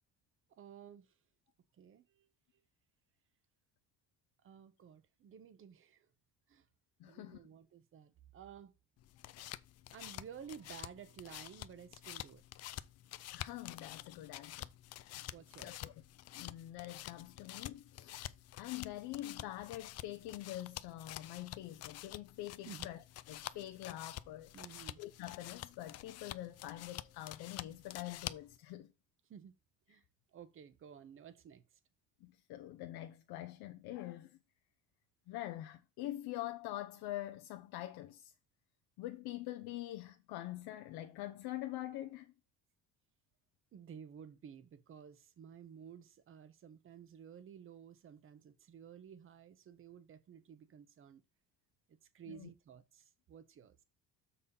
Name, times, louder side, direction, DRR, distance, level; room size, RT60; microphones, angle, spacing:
voice 1, 0.6-1.1 1.8-2.3 4.4-6.1 6.5-6.6 7.0-8.7 9.9-12.4 15.3-15.7 22.6-22.9 24.5-25.0 29.3-29.5 29.9-30.0 30.3-31.6 43.7-51.2 52.1-53.8, right 8 dB, 35° right, 0.9 m, -53 dB
voice 2, 7.0-7.4 13.3-14.7 15.0-15.3 15.6-15.9 16.3-23.0 23.3-24.5 25.0-28.9 32.2-34.4 35.3-38.3 39.0-42.3 52.3-52.5, left 15 dB, 85° left, 0.8 m, -45 dB
sound 1, 9.0-28.6, left 14 dB, 45° left, 0.4 m, -49 dB
7.0 x 4.2 x 5.4 m
cardioid pair, 160°, 37 cm